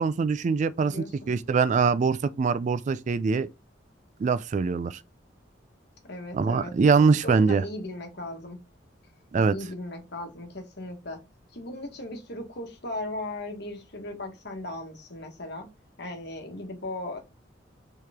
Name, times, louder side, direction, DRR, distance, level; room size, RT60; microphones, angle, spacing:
voice 1, 0.0-3.5 4.2-5.0 6.3-7.6 9.3-9.5, right 5 dB, 40° right, 0.3 m, -23 dB
voice 2, 0.8-1.3 6.1-6.7 7.2-8.6 9.5-11.2 11.5-15.7 16.0-17.2, left 1 dB, 60° left, 1.4 m, -37 dB
4.7 x 3.1 x 3.5 m
head